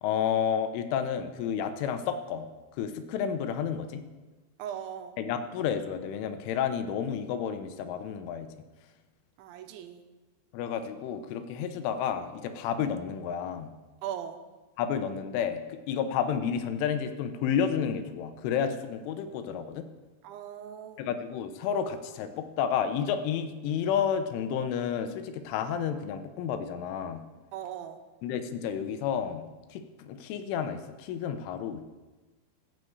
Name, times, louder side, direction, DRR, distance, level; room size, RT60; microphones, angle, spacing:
voice 1, 0.0-2.5 2.8-4.0 5.2-8.5 10.5-13.7 14.8-19.8 21.0-27.2 28.2-31.8, left 8 dB, 85° left, 9 dB, 3.3 m, -31 dB
voice 2, 4.6-5.1 9.4-10.0 14.0-14.4 20.2-21.0 27.5-28.0, right 9 dB, 80° right, 7 dB, 3.1 m, -39 dB
15.0 x 6.5 x 7.9 m, 1.2 s
omnidirectional pair, 5.6 m